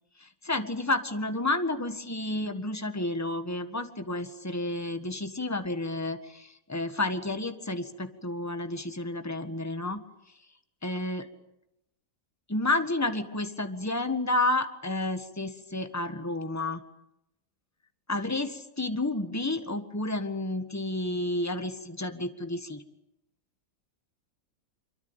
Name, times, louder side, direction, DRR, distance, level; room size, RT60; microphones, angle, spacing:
voice 1, 0.2-10.0 10.8-11.3 12.5-16.8 18.1-22.8, left 2 dB, 10° left, 8 dB, 1.6 m, -31 dB
25.5 x 24.0 x 9.0 m, 0.87 s
omnidirectional pair, 1.5 m